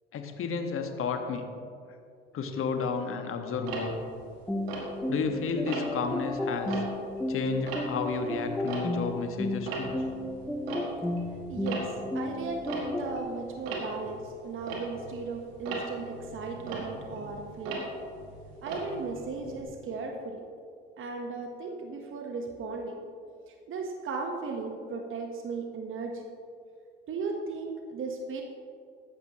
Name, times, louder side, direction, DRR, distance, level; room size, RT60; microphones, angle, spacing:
voice 1, 0.1-1.5 2.3-3.9 5.1-6.8 7.3-10.0, left 5 dB, 45° left, 6 dB, 1.5 m, -32 dB
Tick-tock, 3.7-5.3 5.7-6.1 6.5-9.3 9.5-19.6, right 3 dB, 70° right, 2.4 m, -39 dB
sound 1, 4.5-13.2, left 1 dB, 5° left, 0.9 m, -33 dB
voice 2, 11.5-17.8 18.6-20.4 21.0-23.0 23.5-26.3 27.1-28.4, right 4 dB, 40° right, 3 dB, 1.3 m, -36 dB
15.0 x 11.5 x 3.1 m, 2.4 s
hypercardioid pair, 65°, 31 cm